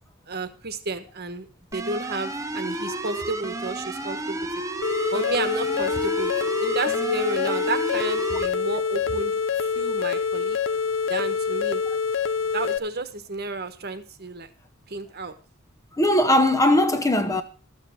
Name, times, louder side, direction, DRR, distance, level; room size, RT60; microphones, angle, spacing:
voice 1, 0.3-1.5 1.7-4.5 5.1-10.6 11.1-11.8 12.5-14.5 14.9-15.3, right 3 dB, 50° right, 1.3 m, -31 dB
sound 1, 1.7-8.5, right 2 dB, 15° right, 0.8 m, -32 dB
sound 2, 4.8-12.8, left 6 dB, 60° left, 0.7 m, -26 dB
voice 2, 16.0-17.4, left 1 dB, 15° left, 0.9 m, -19 dB
13.0 x 7.3 x 6.1 m
head